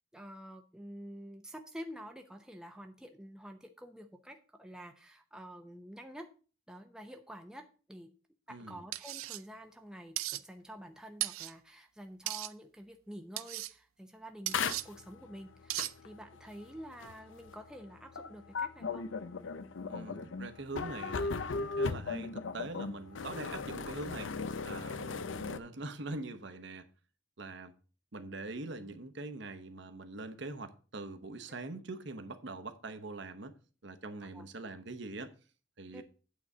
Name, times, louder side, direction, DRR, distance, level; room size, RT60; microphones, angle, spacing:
voice 1, 0.1-6.3 6.7-8.1 8.5-19.0 34.3-34.5 35.9-36.0, equal, 5° right, 0.6 m, -48 dB
voice 2, 8.5-8.8 19.9-24.3 24.6-26.9 27.4-27.7 28.1-33.5 33.8-35.3 35.8-36.0, right 2 dB, 60° right, 1.0 m, -43 dB
sound 1, 8.9-9.4 10.2-10.4 11.2-11.5 12.3-12.5 13.4-13.7 14.5-14.8 15.7-15.9, right 16 dB, 90° right, 0.4 m, -36 dB
sound 2, 14.5-25.6, left 4 dB, 65° left, 0.6 m, -37 dB
8.7 x 4.1 x 7.2 m
head